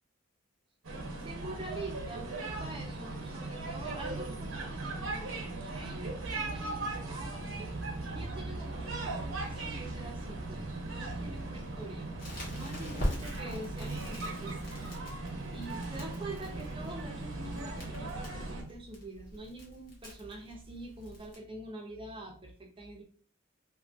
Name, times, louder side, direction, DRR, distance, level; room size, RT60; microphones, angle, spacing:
sound 1, 0.8-18.6, right 2 dB, 85° right, 0.8 m, -38 dB
voice 1, 1.1-7.5 8.1-12.1 12.5-14.8 15.1-15.2 15.5-23.0, right 1 dB, 25° right, 1 dB, 0.6 m, -45 dB
Crackle, 12.2-21.3, equal, 45° left, 1.1 m, -42 dB
2.7 x 2.5 x 2.5 m, 0.43 s
head